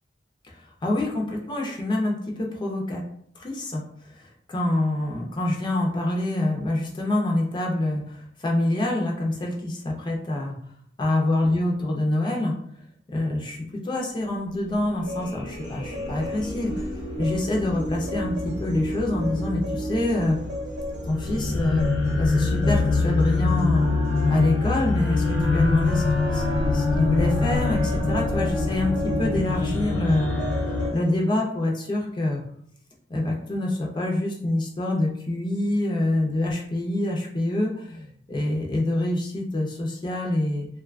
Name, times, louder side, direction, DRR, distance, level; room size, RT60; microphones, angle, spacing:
voice 1, 0.5-3.0 3.4-10.6 11.0-12.6 13.1-16.9 17.2-20.4 21.1-21.9 22.2-23.9 24.3-30.3 30.7-32.4 33.1-40.7, left 1 dB, 25° left, -1 dB, 0.4 m, -26 dB
sound 1, 14.7-30.9, left 3 dB, 80° left, 0.7 m, -25 dB
sound 2, 15.0-31.1, equal, 85° right, 0.8 m, -37 dB
Wind instrument woodwind instrument, 22.8-29.4, equal, 50° right, 0.6 m, -39 dB
2.5 x 2.2 x 2.3 m, 0.65 s
head